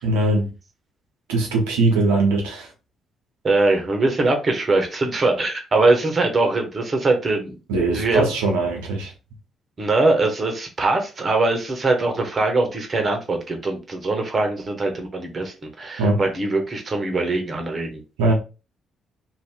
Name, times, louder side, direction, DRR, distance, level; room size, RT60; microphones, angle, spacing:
voice 1, 0.0-0.5 1.3-2.7 7.7-9.1 16.0-16.2 18.2-18.3, right 2 dB, 75° right, 0.9 m, -20 dB
voice 2, 3.4-7.5 7.9-8.3 9.8-18.0, right 2 dB, 40° right, 1.0 m, -22 dB
2.7 x 2.6 x 3.5 m
figure-of-eight pair, 40°, 0 cm